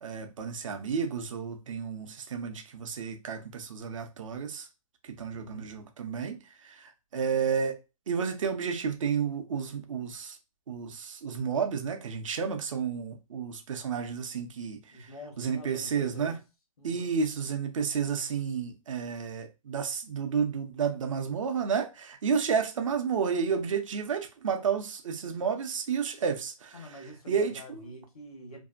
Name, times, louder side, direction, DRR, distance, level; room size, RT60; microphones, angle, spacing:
voice 1, 0.0-4.7 5.0-7.8 8.1-10.4 10.7-15.1 15.4-16.4 16.8-26.8 27.3-27.9, right 6 dB, 65° right, 0.6 m, -31 dB
voice 2, 5.3-5.7 14.9-16.4 16.8-17.1 26.7-28.6, equal, 85° left, 1.1 m, -46 dB
2.6 x 2.2 x 2.4 m
hypercardioid pair, 145°, 18 cm